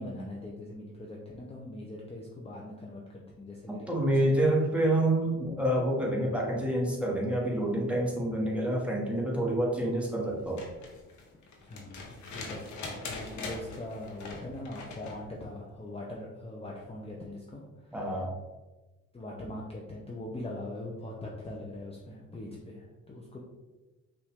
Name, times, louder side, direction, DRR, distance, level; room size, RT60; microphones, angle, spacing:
voice 1, 0.0-4.5 11.6-18.2 19.1-23.4, left 1 dB, 20° left, -3 dB, 0.8 m, -42 dB
voice 2, 3.7-10.6 17.9-18.3, right 1 dB, 5° right, -3 dB, 1.4 m, -28 dB
sound 1, 10.4-15.2 16.9-17.0, left 3 dB, 70° left, 1.1 m, -42 dB
5.4 x 2.7 x 3.6 m, 1.1 s
cardioid pair, 90°, 30 cm